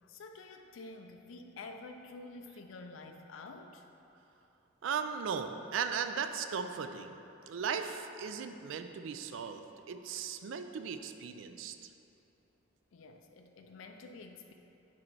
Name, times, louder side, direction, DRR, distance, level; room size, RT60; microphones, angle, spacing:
voice 1, 0.0-3.8 12.9-14.5, left 3 dB, 85° left, 5 dB, 0.4 m, -49 dB
voice 2, 4.8-7.2 7.5-11.8, right 6 dB, 80° right, 8 dB, 0.4 m, -37 dB
6.3 x 4.4 x 4.5 m, 2.9 s
head